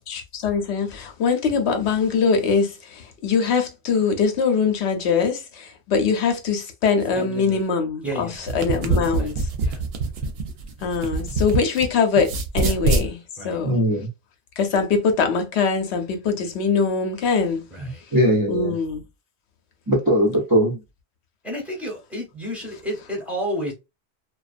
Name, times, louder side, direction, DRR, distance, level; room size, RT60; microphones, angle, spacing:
voice 1, 0.1-9.3 10.8-13.2 13.4-13.8 14.6-17.7 18.5-19.0, left 5 dB, 75° left, 0.8 m, -22 dB
voice 2, 7.1-7.6 8.0-9.8 12.6-12.8 13.4-13.6 17.7-18.0 21.4-23.7, equal, ahead, 0.7 m, -32 dB
sound 1, 8.3-11.9 12.2-13.1, right 3 dB, 70° right, 0.7 m, -24 dB
voice 3, 13.6-14.1 17.8-18.7 19.9-20.8, equal, 30° right, 0.4 m, -20 dB
2.4 x 2.1 x 2.4 m
omnidirectional pair, 1.1 m